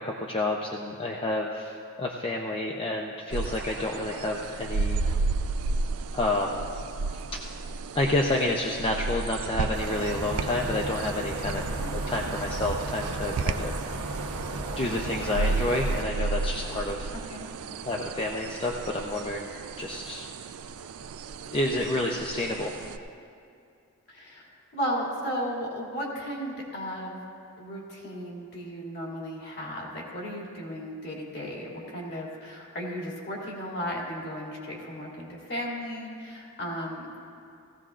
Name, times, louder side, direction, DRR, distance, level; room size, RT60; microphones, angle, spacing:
voice 1, 0.0-5.0 6.1-6.8 7.1-7.2 7.9-11.6 11.9-17.1 17.8-19.5 19.8-20.3 21.4-22.7, left 2 dB, 25° left, 0 dB, 0.6 m, -29 dB
sound 1, 3.3-23.0, right 3 dB, 70° right, 0.4 m, -33 dB
sound 2, 9.7-16.0, right 2 dB, 90° right, 1.0 m, -35 dB
voice 2, 24.1-27.2 27.6-37.2, equal, 50° left, -3 dB, 2.6 m, -35 dB
17.5 x 15.5 x 2.5 m, 2.5 s
head